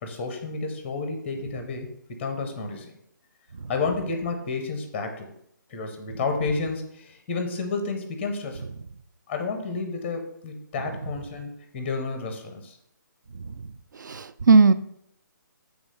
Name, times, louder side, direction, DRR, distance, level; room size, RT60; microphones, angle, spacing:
voice 1, 0.0-2.9 3.7-5.3 5.7-8.6 9.3-12.8, left 4 dB, 10° left, 5 dB, 0.6 m, -31 dB
voice 2, 14.0-14.7, right 4 dB, 65° right, 13 dB, 0.5 m, -17 dB
7.4 x 3.5 x 6.3 m, 0.71 s
hypercardioid pair, 175°, 11 cm